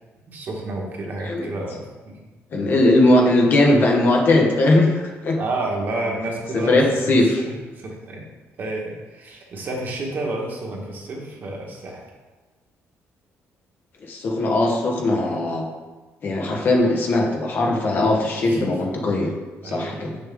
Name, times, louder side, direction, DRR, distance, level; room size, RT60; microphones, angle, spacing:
voice 1, 0.3-2.2 5.4-7.2 7.4-8.2 8.6-12.1 18.4-18.7 19.6-20.2, right 2 dB, 40° right, -1 dB, 1.5 m, -30 dB
voice 2, 1.2-1.5 2.5-5.4 6.5-7.5 14.0-15.6 16.2-19.3 19.6-20.1, left 2 dB, 40° left, 1 dB, 1.1 m, -19 dB
7.8 x 6.3 x 3.7 m, 1.3 s
cardioid pair, 170°, 5 cm